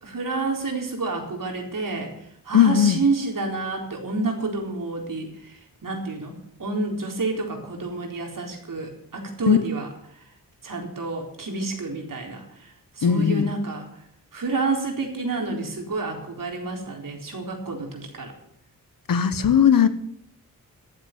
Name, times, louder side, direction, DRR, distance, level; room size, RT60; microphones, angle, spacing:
voice 1, 0.0-2.1 2.4-6.3 6.6-9.9 10.6-13.9 14.3-18.3, right 3 dB, 60° right, 1 dB, 4.2 m, -29 dB
voice 2, 2.5-3.0 9.5-9.6 13.0-13.5 19.1-19.9, left 8 dB, 65° left, 13 dB, 1.2 m, -18 dB
13.0 x 8.0 x 9.4 m, 0.69 s
cardioid pair, 50°, 36 cm